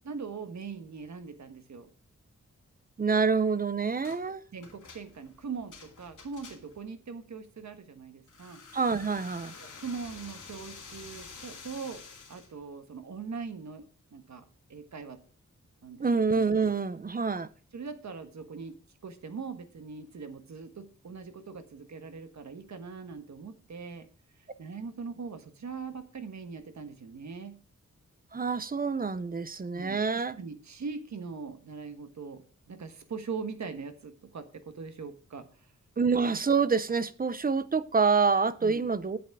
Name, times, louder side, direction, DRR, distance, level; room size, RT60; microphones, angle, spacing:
voice 1, 0.0-1.9 4.2-8.6 9.6-13.8 14.1-14.4 14.7-15.2 15.8-16.3 17.7-18.8 19.0-24.1 24.6-27.6 29.7-35.7 38.6-38.9, right 5 dB, 65° right, 1.4 m, -41 dB
voice 2, 3.0-4.4 8.7-9.5 16.0-17.5 28.3-30.4 36.0-39.2, right 5 dB, 30° right, 0.6 m, -27 dB
sound 1, 4.0-4.2 4.6-6.9 8.3-12.5, left 5 dB, 85° left, 2.6 m, -49 dB
8.5 x 8.2 x 4.7 m
wide cardioid pair, 175°, 30 cm